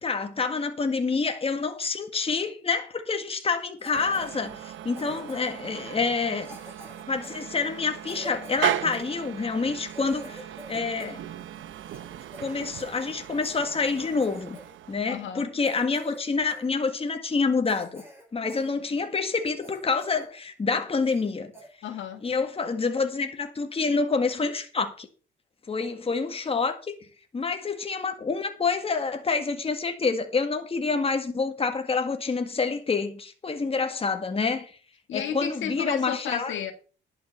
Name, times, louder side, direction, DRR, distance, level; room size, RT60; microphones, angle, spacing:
voice 1, 0.0-6.6 7.1-11.2 12.4-14.6 14.9-18.0 18.3-21.5 22.2-25.1 25.7-27.0 27.3-34.7 35.1-36.5, left 4 dB, 30° left, 1.9 m, -27 dB
Cough, 3.8-4.3 4.9-5.7 6.4-9.1 9.6-9.7 9.9-11.2 11.5-13.0 13.5-13.6 13.8-14.7 15.0-15.2 15.6-16.2 16.5-16.7 17.2-17.3 17.6-18.7 19.1-19.2 19.6-20.3 20.6-20.7 21.0-21.3 21.5-21.7 22.2-22.4, equal, 10° right, 6.6 m, -46 dB
sound 1, 3.9-15.3, right 11 dB, 75° right, 0.9 m, -37 dB
voice 2, 15.1-15.5 21.8-22.2 35.1-36.7, left 8 dB, 75° left, 1.9 m, -33 dB
11.0 x 5.8 x 6.9 m
cardioid pair, 90°, 20 cm